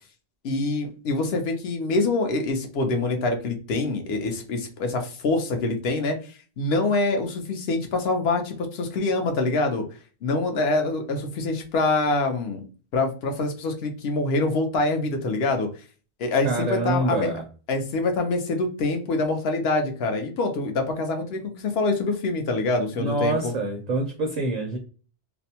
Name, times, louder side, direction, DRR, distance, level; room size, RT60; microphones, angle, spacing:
voice 1, 0.4-9.8 10.2-12.6 12.9-15.7 16.2-17.3 17.7-23.5, left 3 dB, 70° left, 5 dB, 0.8 m, -25 dB
voice 2, 16.4-17.4 23.0-24.8, right 2 dB, 55° right, 3 dB, 0.4 m, -26 dB
2.5 x 2.1 x 2.7 m, 0.37 s
omnidirectional pair, 1.1 m